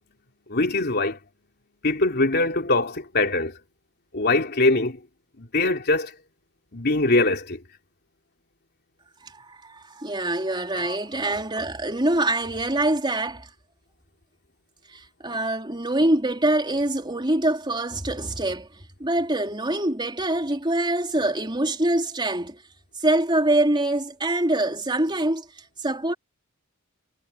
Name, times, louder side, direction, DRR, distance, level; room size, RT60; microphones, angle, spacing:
voice 1, 0.5-1.2 1.8-3.5 4.1-5.0 5.4-6.1 6.7-7.6 10.7-11.0, left 2 dB, 50° left, 3.4 m, -22 dB
voice 2, 9.2-13.5 14.9-18.7 19.0-22.6 23.0-25.5 25.8-26.1, right 1 dB, 20° right, 3.8 m, -24 dB
head